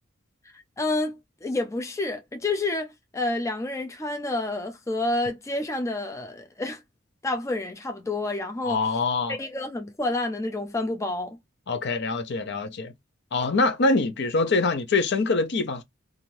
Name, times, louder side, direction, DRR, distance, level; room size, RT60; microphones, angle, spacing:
voice 1, 0.8-6.8 7.2-8.8 9.3-11.4, left 2 dB, 15° left, 0.4 m, -29 dB
voice 2, 8.6-9.4 11.7-12.9 13.3-15.8, left 3 dB, 55° left, 0.6 m, -24 dB
2.7 x 2.4 x 3.0 m
head